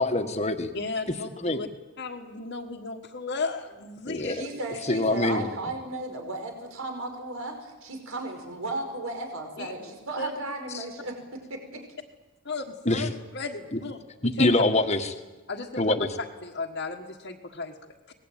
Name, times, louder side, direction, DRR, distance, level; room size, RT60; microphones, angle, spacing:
voice 1, 0.0-0.7 1.4-1.6 4.1-4.5 4.9-5.4 10.7-10.8 12.8-13.1 13.7-13.8 14.2-15.1 15.8-16.1, left 2 dB, 30° left, 7 dB, 1.6 m, -24 dB
voice 2, 0.7-1.7 2.0-4.4 9.6-9.7 10.2-10.3 11.7-11.8 12.4-14.5 15.5-16.0 16.4-17.7, left 3 dB, 55° left, -3 dB, 1.6 m, -35 dB
voice 3, 4.3-11.1, right 2 dB, 70° right, 4 dB, 5.2 m, -35 dB
24.5 x 20.0 x 9.2 m, 1.2 s
head